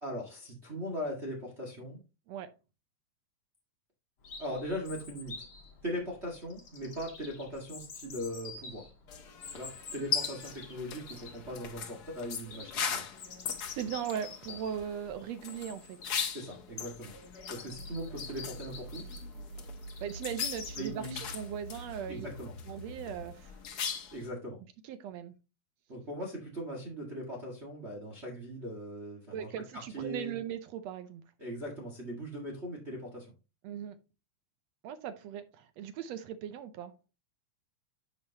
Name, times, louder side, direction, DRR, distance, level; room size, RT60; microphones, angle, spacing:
voice 1, 0.0-2.0 4.4-5.3 5.8-8.9 9.5-13.0 16.3-17.1 17.5-19.0 20.8-21.2 22.1-22.5 24.1-24.6 25.9-30.3 31.4-33.3, equal, 25° right, 1.7 m, -39 dB
Chirp tweet, 4.2-20.9, left 5 dB, 45° left, 1.6 m, -49 dB
sound 1, 9.1-24.3, left 7 dB, 85° left, 0.8 m, -40 dB
voice 2, 13.7-16.0 20.0-22.3 22.7-23.5 24.8-25.4 29.3-31.2 33.6-34.0 34.8-36.9, right 9 dB, 75° right, 1.7 m, -39 dB
sound 2, 17.7-23.3, equal, 50° right, 1.4 m, -46 dB
10.5 x 5.1 x 2.8 m
omnidirectional pair, 3.3 m